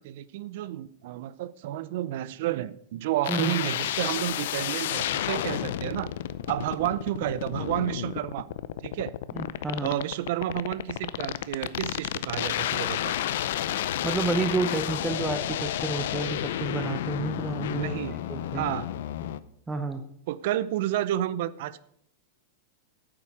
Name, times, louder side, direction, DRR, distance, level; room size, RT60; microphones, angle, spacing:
voice 1, 0.0-6.1 6.5-8.5 8.8-9.1 9.8-13.1 17.7-18.2 18.5-18.9 20.3-21.8, right 13 dB, 65° right, 17 dB, 0.6 m, -31 dB
sound 1, 3.2-19.4, left 12 dB, 70° left, 0.5 m, -31 dB
voice 2, 9.3-9.9 14.0-18.7 19.7-20.0, right 3 dB, 10° right, 7 dB, 0.9 m, -30 dB
9.0 x 7.7 x 6.1 m, 0.72 s
hypercardioid pair, 125°, 0 cm